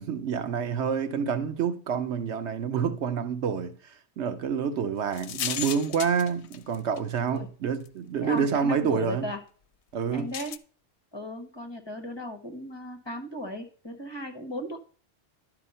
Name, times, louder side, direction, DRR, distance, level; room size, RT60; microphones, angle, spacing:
voice 1, 0.0-9.3 9.9-10.3, right 6 dB, 80° right, 1.1 m, -28 dB
sound 1, 5.1-7.0 7.9-8.0 10.3-10.6, left 10 dB, 80° left, 0.9 m, -34 dB
voice 2, 8.2-9.4 10.1-10.6 11.1-14.8, equal, 25° left, 1.2 m, -36 dB
11.0 x 4.5 x 5.6 m
omnidirectional pair, 1.1 m